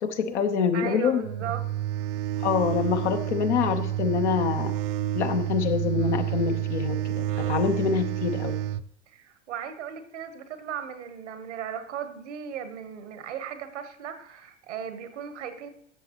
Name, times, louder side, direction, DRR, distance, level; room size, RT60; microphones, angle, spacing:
voice 1, 0.0-1.2 2.4-4.7 5.1-8.6, left 6 dB, 75° left, 6 dB, 1.2 m, -26 dB
voice 2, 0.7-1.7 1.9-2.1 9.1-15.7, right 8 dB, 80° right, 10 dB, 1.2 m, -37 dB
sound 1, 1.2-8.8, right 12 dB, 55° right, 0.5 m, -29 dB
13.5 x 7.3 x 3.0 m, 0.71 s
hypercardioid pair, 80°, 35 cm